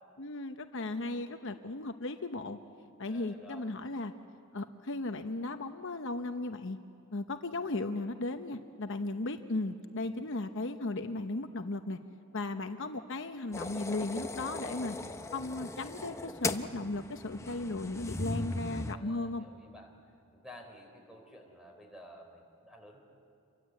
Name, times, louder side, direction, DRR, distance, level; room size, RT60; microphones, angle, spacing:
voice 1, 0.2-2.6 3.0-4.1 4.5-6.8 7.1-12.0 12.3-15.0 15.3-19.4, left 2 dB, 55° left, 7 dB, 0.9 m, -36 dB
voice 2, 3.1-3.7 10.0-10.1 18.8-19.9 20.3-23.0, equal, 5° right, 2 dB, 4.4 m, -53 dB
sound 1, 13.5-19.0, left 2 dB, 15° left, 0.7 m, -38 dB
28.0 x 24.0 x 8.4 m, 2.5 s
head